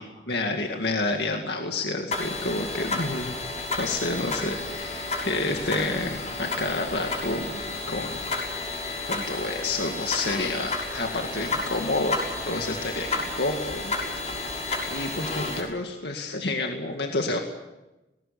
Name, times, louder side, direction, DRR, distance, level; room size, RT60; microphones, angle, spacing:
voice 1, 0.0-3.3 3.8-8.3 8.7-12.2 12.5-13.9 14.9-17.4, left 2 dB, 70° left, 3 dB, 2.1 m, -29 dB
sound 1, 2.1-15.6, left 2 dB, 40° left, 6.8 m, -31 dB
20.0 x 18.5 x 8.7 m, 1.0 s
head